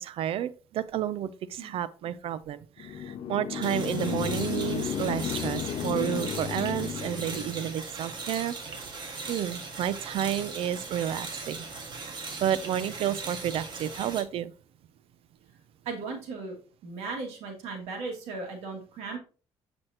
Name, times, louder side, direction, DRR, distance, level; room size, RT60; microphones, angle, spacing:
voice 1, 0.0-8.6 9.3-11.6 12.4-14.5, right 10 dB, 65° right, 0.6 m, -31 dB
sound 1, 2.8-7.7, left 8 dB, 55° left, 0.7 m, -33 dB
sound 2, 3.6-14.2, right 4 dB, 45° right, 1.8 m, -39 dB
voice 2, 15.8-16.6 16.8-19.2, right 4 dB, 85° right, 2.3 m, -36 dB
7.8 x 6.1 x 2.9 m
cardioid pair, 90°, 10 cm